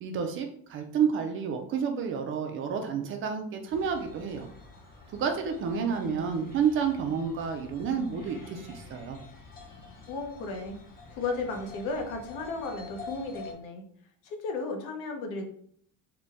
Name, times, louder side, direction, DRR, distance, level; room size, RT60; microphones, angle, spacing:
voice 1, 0.0-4.5 5.1-9.2, right 6 dB, 40° right, 4 dB, 0.4 m, -30 dB
sound 1, 3.7-13.5, left 3 dB, 25° left, 0.8 m, -48 dB
voice 2, 10.1-10.8 11.1-13.8 14.2-15.4, left 3 dB, 70° left, 4 dB, 0.8 m, -34 dB
3.9 x 2.2 x 3.4 m, 0.63 s
cardioid pair, 165°, 32 cm